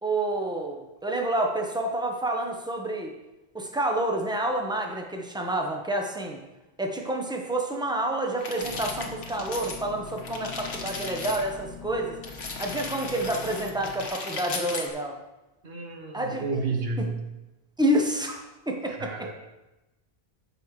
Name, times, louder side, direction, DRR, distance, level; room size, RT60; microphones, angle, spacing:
voice 1, 0.0-3.1 3.5-6.4 6.8-12.1 12.6-15.2 16.1-16.6 17.0-17.1 17.8-19.1, right 1 dB, 5° right, 1 dB, 0.9 m, -28 dB
sound 1, 8.4-9.8 10.1-11.4 12.2-14.9, left 3 dB, 80° left, 1.4 m, -36 dB
sound 2, 8.6-14.1, left 6 dB, 55° left, 1.3 m, -43 dB
voice 2, 15.6-17.2 18.9-19.3, right 3 dB, 65° right, 3 dB, 1.3 m, -31 dB
13.5 x 5.6 x 3.2 m, 1.0 s
omnidirectional pair, 1.1 m